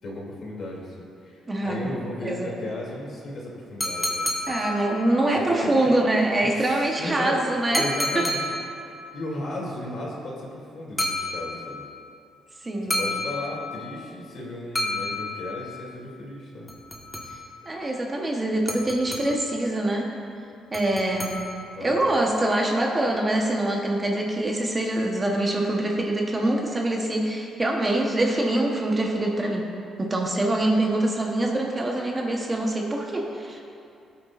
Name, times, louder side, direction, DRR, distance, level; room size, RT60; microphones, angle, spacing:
voice 1, 0.0-4.7 5.3-5.9 6.4-7.4 7.7-8.5 8.8-11.8 13.0-16.7 21.6-22.0, left 1 dB, 55° left, -3 dB, 2.6 m, -35 dB
voice 2, 1.5-1.8 2.2-2.5 4.5-7.8 12.6-13.0 17.3-17.4 17.6-20.1 20.7-21.5 21.8-29.7 30.0-33.6, right 1 dB, 20° right, 0 dB, 1.0 m, -24 dB
sound 1, 3.8-5.3 7.7-8.9 11.0-11.9 12.9-13.9 14.8-15.8 16.7-17.6 18.7-19.6 20.7-21.8, left 1 dB, 10° left, 1.3 m, -30 dB
18.0 x 8.9 x 2.5 m, 2.6 s
cardioid pair, 135°, 0 cm